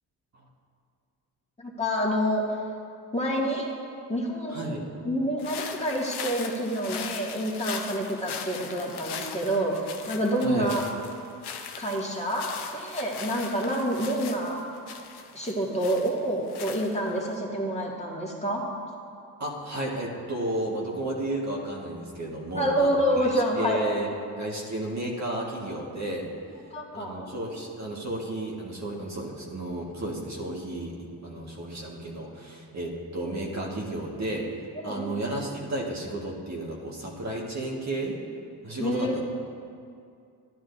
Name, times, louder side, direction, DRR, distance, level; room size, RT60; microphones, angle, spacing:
voice 1, 1.6-2.4 3.1-3.7 4.1-4.8 5.1-9.8 10.1-10.8 11.8-12.5 12.7-14.6 15.3-18.6 22.6-23.8 26.7-27.3 33.2-33.4 34.8-35.2 38.8-39.2, equal, 15° left, -3 dB, 2.0 m, -27 dB
voice 2, 4.5-4.9 10.4-10.7 19.4-24.1 24.4-26.3 26.9-34.5 34.8-38.2 38.6-39.2, right 1 dB, 40° right, -3 dB, 1.7 m, -33 dB
sound 1, 5.4-17.3, left 7 dB, 60° left, 0.9 m, -40 dB
11.0 x 11.0 x 2.7 m, 2.4 s
hypercardioid pair, 55°, 44 cm